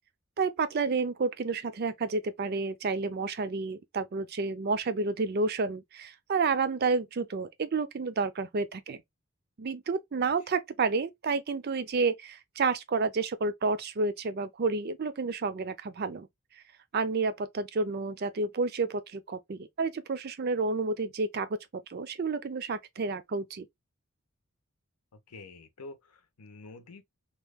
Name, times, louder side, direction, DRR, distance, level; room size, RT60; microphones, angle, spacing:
voice 1, 0.4-9.0 9.6-16.3 16.9-23.7, right 4 dB, 45° right, 0.4 m, -30 dB
voice 2, 25.3-27.0, left 3 dB, 90° left, 0.7 m, -47 dB
2.9 x 2.3 x 3.4 m
head